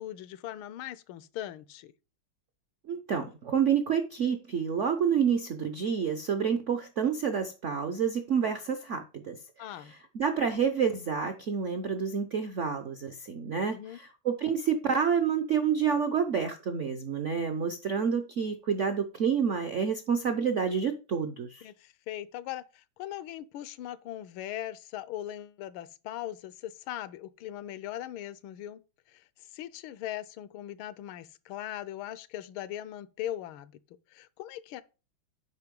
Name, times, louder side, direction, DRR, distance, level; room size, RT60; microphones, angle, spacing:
voice 1, 0.0-1.9 9.6-9.9 13.7-14.0 21.6-28.8 29.1-29.2 29.5-33.7 34.1-34.8, left 12 dB, 85° left, 1.5 m, -39 dB
voice 2, 2.9-9.4 9.7-21.7, right 7 dB, 70° right, 0.7 m, -29 dB
8.3 x 5.2 x 5.2 m
omnidirectional pair, 2.2 m